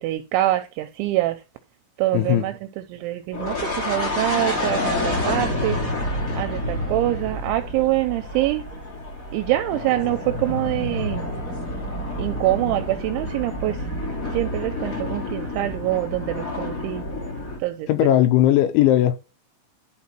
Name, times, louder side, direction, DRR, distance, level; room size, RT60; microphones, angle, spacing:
voice 1, 0.0-1.4 2.0-2.5 2.9-3.5 3.9-5.8 6.4-8.6 9.3-11.3 12.2-13.7 14.3-17.0 17.6-17.9, right 16 dB, 85° right, 2.8 m, -24 dB
voice 2, 2.1-2.5 17.9-19.2, left 13 dB, 80° left, 2.9 m, -18 dB
sound 1, 3.3-17.6, left 1 dB, 30° left, 1.5 m, -28 dB
11.5 x 4.4 x 4.4 m
omnidirectional pair, 5.8 m